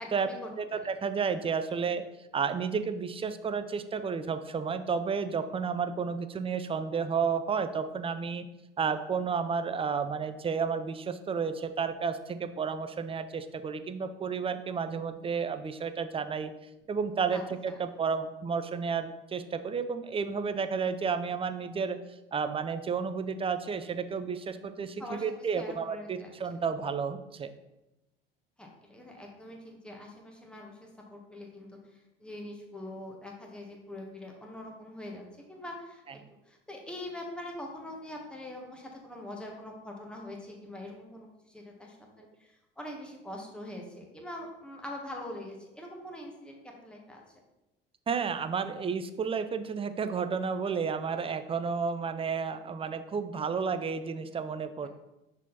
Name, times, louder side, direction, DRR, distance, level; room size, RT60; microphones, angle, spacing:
voice 1, 0.0-0.9 17.3-17.8 25.0-26.3 28.6-36.2 36.4-47.2 54.8-54.9, left 1 dB, 5° left, 0 dB, 1.5 m, -43 dB
voice 2, 0.6-2.0 2.3-8.5 8.8-16.5 16.9-22.0 22.3-27.5 48.1-54.9, right 5 dB, 20° right, 10 dB, 0.5 m, -32 dB
6.2 x 3.9 x 4.1 m, 0.94 s
hypercardioid pair, 70°, 30 cm